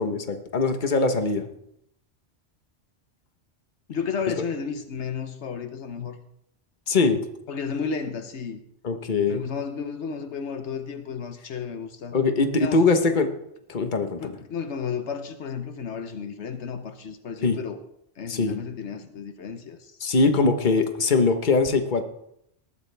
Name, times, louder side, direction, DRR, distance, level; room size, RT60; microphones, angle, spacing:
voice 1, 0.0-1.5 6.9-7.2 8.8-9.5 12.1-13.3 13.7-14.2 17.4-17.6 18.3-18.5 20.0-22.0, left 3 dB, 45° left, 7 dB, 1.3 m, -22 dB
voice 2, 3.9-6.2 7.5-8.6 9.3-12.2 12.6-12.9 14.2-17.8 18.2-20.0, left 6 dB, 80° left, 8 dB, 1.2 m, -32 dB
20.0 x 13.0 x 3.4 m, 0.77 s
omnidirectional pair, 1.2 m